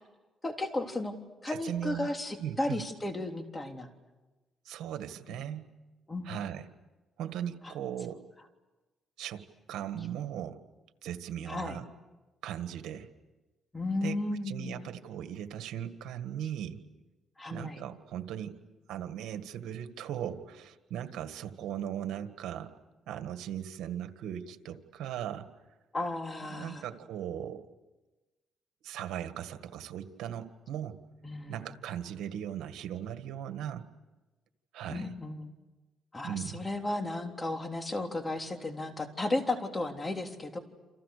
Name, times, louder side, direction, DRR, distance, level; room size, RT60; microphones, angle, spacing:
voice 1, 0.4-1.1 1.4-3.9 5.3-5.4 6.1-6.4 7.6-7.7 11.5-11.8 13.7-14.8 17.4-17.8 25.9-26.9 31.2-31.7 34.9-35.5 36.1-40.6, left 2 dB, 20° left, 4 dB, 3.5 m, -34 dB
voice 2, 1.5-2.1 2.4-2.8 4.6-5.7 6.2-6.6 7.2-8.2 9.2-9.4 9.7-10.6 11.0-11.9 12.4-13.1 14.0-14.2 14.4-16.8 17.5-18.6 18.9-22.7 23.1-25.5 26.5-27.6 28.8-31.0 31.5-33.9 34.7-35.1 36.2-36.7, right 10 dB, 85° right, 9 dB, 1.7 m, -38 dB
29.0 x 27.5 x 6.8 m, 1.2 s
cardioid pair, 90°, 0 cm